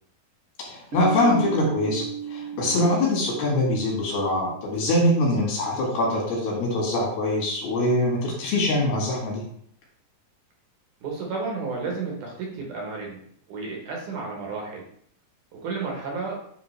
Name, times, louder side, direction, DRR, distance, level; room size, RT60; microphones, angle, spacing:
voice 1, 0.6-9.4, left 1 dB, 85° left, -3 dB, 3.9 m, -23 dB
Piano, 0.9-6.3, right 8 dB, 85° right, 1.7 m, -36 dB
voice 2, 11.0-14.9 15.6-16.4, right 4 dB, 65° right, -1 dB, 2.3 m, -32 dB
9.6 x 3.3 x 3.2 m, 0.66 s
omnidirectional pair, 4.3 m